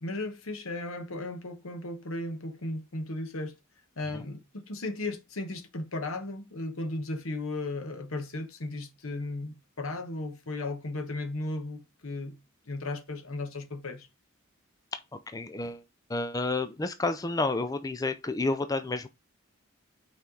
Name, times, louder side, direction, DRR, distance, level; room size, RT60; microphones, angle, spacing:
voice 1, 0.0-3.5 4.0-12.4 12.7-14.1, left 2 dB, 75° left, 1.2 m, -35 dB
voice 2, 14.9-15.8 16.1-19.1, left 3 dB, 15° left, 0.4 m, -30 dB
5.8 x 4.4 x 3.8 m
head